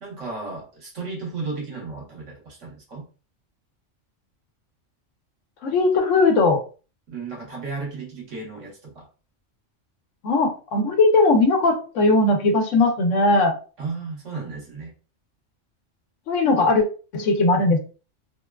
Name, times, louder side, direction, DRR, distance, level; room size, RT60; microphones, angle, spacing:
voice 1, 0.0-3.0 7.1-9.1 13.8-14.9, right 4 dB, 80° right, -2 dB, 1.5 m, -34 dB
voice 2, 5.6-6.6 10.2-13.6 16.3-16.8 17.1-17.8, left 3 dB, 85° left, 5 dB, 1.0 m, -19 dB
3.5 x 2.2 x 2.3 m, 0.35 s
omnidirectional pair, 1.3 m